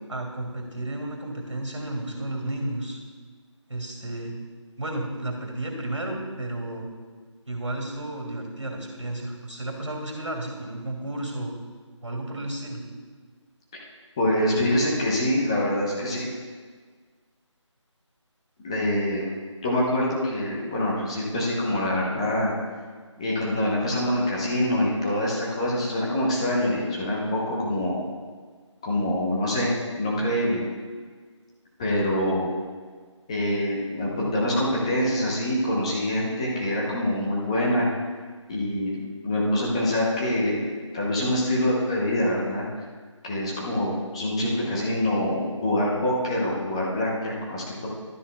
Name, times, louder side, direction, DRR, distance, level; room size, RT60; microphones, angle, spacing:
voice 1, 0.1-3.0 3.7-4.3 4.8-6.9 7.5-11.5 12.0-12.8, right 1 dB, 75° right, 1 dB, 2.5 m, -32 dB
voice 2, 14.2-16.3 18.6-19.2 19.6-22.5 23.2-28.0 28.8-29.7 30.0-30.6 31.8-32.5 33.3-37.9 38.5-40.7 40.9-42.7 43.2-47.9, left 1 dB, 10° left, -4 dB, 0.8 m, -25 dB
12.0 x 9.8 x 2.3 m, 1.5 s
figure-of-eight pair, 165°, 16 cm